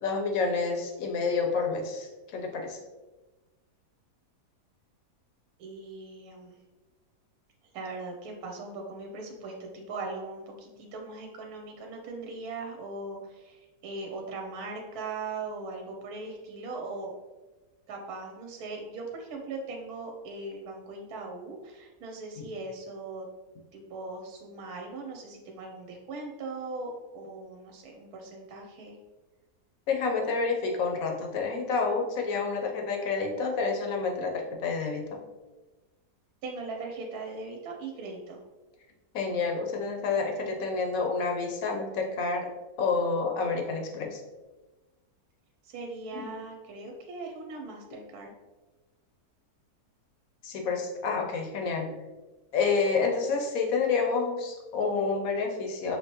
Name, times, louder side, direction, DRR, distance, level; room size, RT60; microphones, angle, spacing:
voice 1, 0.0-2.8 29.9-35.2 39.1-42.5 42.8-44.2 46.1-46.2 50.4-51.9 52.5-56.0, left 4 dB, 65° left, 2 dB, 1.1 m, -29 dB
voice 2, 5.6-6.6 7.7-17.1 17.9-23.3 23.7-29.0 36.4-38.4 45.6-48.3, right 3 dB, 75° right, 2 dB, 1.1 m, -39 dB
5.6 x 2.9 x 2.9 m, 1.2 s
omnidirectional pair, 1.7 m